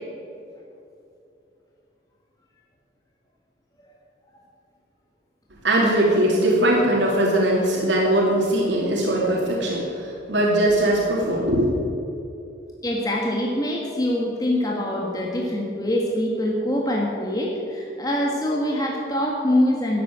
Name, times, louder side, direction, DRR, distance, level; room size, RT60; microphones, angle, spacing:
voice 1, 5.6-11.7, right 1 dB, 80° right, -3 dB, 2.6 m, -20 dB
voice 2, 12.8-20.0, left 1 dB, 20° left, -2 dB, 1.6 m, -24 dB
13.0 x 8.5 x 9.4 m, 2.7 s
head